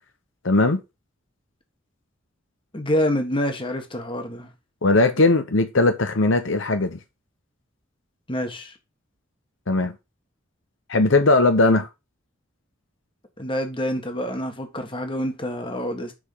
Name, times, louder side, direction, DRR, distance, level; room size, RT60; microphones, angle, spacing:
voice 1, 0.4-0.8 4.8-7.0 9.7-9.9 10.9-11.9, left 2 dB, 70° left, 0.9 m, -19 dB
voice 2, 2.7-4.5 8.3-8.7 13.4-16.1, equal, 25° left, 1.6 m, -27 dB
6.4 x 4.9 x 6.7 m
head